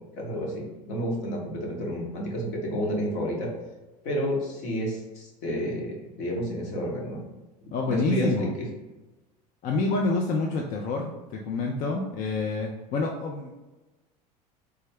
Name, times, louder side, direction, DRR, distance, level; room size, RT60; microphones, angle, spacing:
voice 1, 0.1-3.5 4.0-7.2 7.6-8.5, equal, 60° left, -2 dB, 1.1 m, -30 dB
voice 2, 7.7-8.5 9.6-13.5, left 3 dB, 40° left, 1 dB, 0.4 m, -27 dB
3.3 x 2.1 x 3.4 m, 1.1 s
hypercardioid pair, 75°, 21 cm